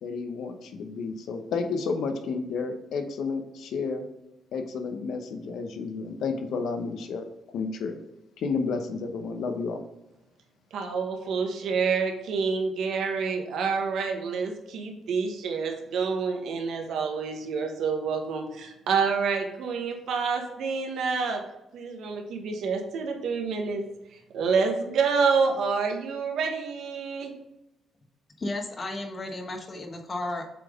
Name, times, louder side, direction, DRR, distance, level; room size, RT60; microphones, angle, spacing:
voice 1, 0.0-4.1 4.5-7.3 7.5-8.0 8.4-9.8, left 4 dB, 75° left, 6 dB, 0.9 m, -31 dB
voice 2, 10.7-21.4 21.7-23.8 24.3-27.3, right 5 dB, 75° right, 3 dB, 1.2 m, -28 dB
voice 3, 28.4-30.5, left 2 dB, 35° left, 4 dB, 1.2 m, -33 dB
7.5 x 3.5 x 3.7 m, 0.93 s
cardioid pair, 90°, 0 cm